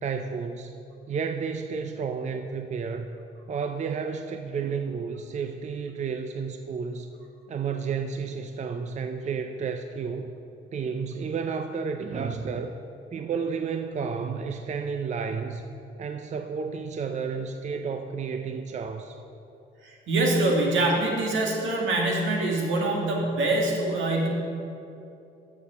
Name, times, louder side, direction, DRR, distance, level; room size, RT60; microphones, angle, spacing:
voice 1, 0.0-0.8 1.1-3.1 3.5-7.1 7.5-10.4 10.7-12.7 13.1-15.6 16.0-19.2, right 5 dB, 35° right, 6 dB, 0.5 m, -31 dB
voice 2, 19.8-24.3, right 2 dB, 75° right, -1 dB, 1.9 m, -24 dB
7.0 x 7.0 x 6.6 m, 2.7 s
cardioid pair, 90°, 20 cm